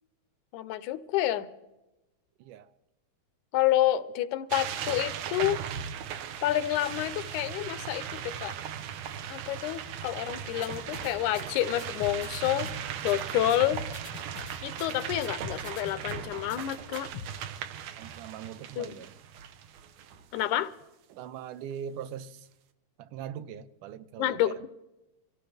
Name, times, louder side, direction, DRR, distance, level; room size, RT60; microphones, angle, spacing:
voice 1, 0.5-1.5 3.5-5.6 6.4-8.5 9.3-12.7 13.0-13.8 14.6-17.1 18.8-18.9 20.3-20.7 24.2-24.7, left 13 dB, 80° left, 2.1 m, -29 dB
voice 2, 2.4-2.7 18.0-19.1 21.1-22.5 23.0-24.7, right 9 dB, 90° right, 2.3 m, -41 dB
sound 1, 4.5-20.4, right 9 dB, 70° right, 1.9 m, -38 dB
sound 2, 10.6-17.3, left 5 dB, 65° left, 1.4 m, -43 dB
25.0 x 16.5 x 3.4 m
omnidirectional pair, 3.5 m